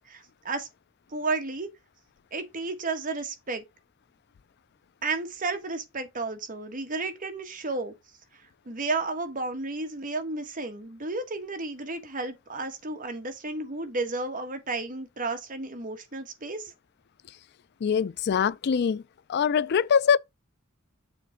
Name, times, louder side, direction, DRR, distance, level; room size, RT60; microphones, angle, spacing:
voice 1, 0.1-0.7 1.1-1.7 2.3-3.6 5.0-7.9 8.7-16.7, right 3 dB, 40° right, 1.4 m, -32 dB
voice 2, 17.8-19.0 19.3-20.2, left 7 dB, 50° left, 0.4 m, -23 dB
7.1 x 3.5 x 5.7 m
head